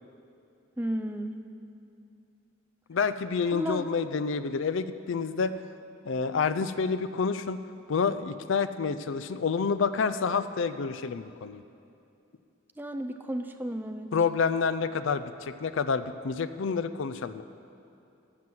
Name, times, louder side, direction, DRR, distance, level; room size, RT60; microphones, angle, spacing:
voice 1, 0.8-1.4 3.5-3.9 12.8-14.1, right 1 dB, 10° right, 6 dB, 0.5 m, -33 dB
voice 2, 2.9-5.5 6.0-7.6 7.9-11.6 14.1-17.4, left 5 dB, 70° left, 12 dB, 0.4 m, -28 dB
13.0 x 6.2 x 7.7 m, 2.7 s
head